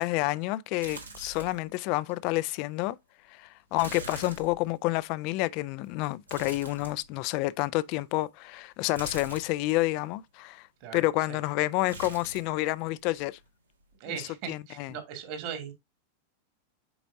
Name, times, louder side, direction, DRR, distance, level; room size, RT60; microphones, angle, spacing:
voice 1, 0.0-3.0 3.3-10.7 10.9-13.4 14.1-14.9, left 19 dB, 45° left, 0.4 m, -29 dB
sound 1, 0.8-1.7 2.1-2.2 3.8-5.0 6.3-7.4 9.0-9.8 11.9-12.6 12.8-13.5 13.8-13.9, right 2 dB, 80° right, 1.7 m, -43 dB
voice 2, 10.8-11.4 14.0-15.7, right 8 dB, 45° right, 2.1 m, -39 dB
7.8 x 5.1 x 2.7 m
figure-of-eight pair, 90°, 0 cm